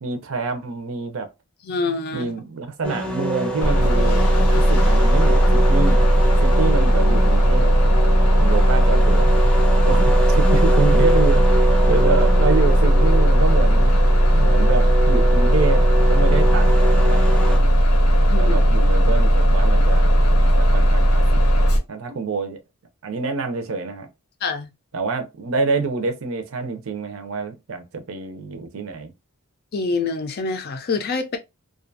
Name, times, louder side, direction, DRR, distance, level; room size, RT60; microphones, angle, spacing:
voice 1, 0.0-1.3 2.1-4.2 4.5-9.4 9.8-14.0 14.3-17.7 18.4-21.2 21.9-22.6 23.0-24.1 24.9-29.1, right 4 dB, 65° right, 0.5 m, -27 dB
voice 2, 1.6-2.3 18.3-18.6 24.4-24.7 29.7-31.4, left 4 dB, 45° left, 0.4 m, -26 dB
sound 1, 2.8-17.6, right 2 dB, 5° left, 0.6 m, -26 dB
Bus, 3.6-21.8, equal, 90° left, 0.7 m, -16 dB
2.5 x 2.3 x 2.6 m
head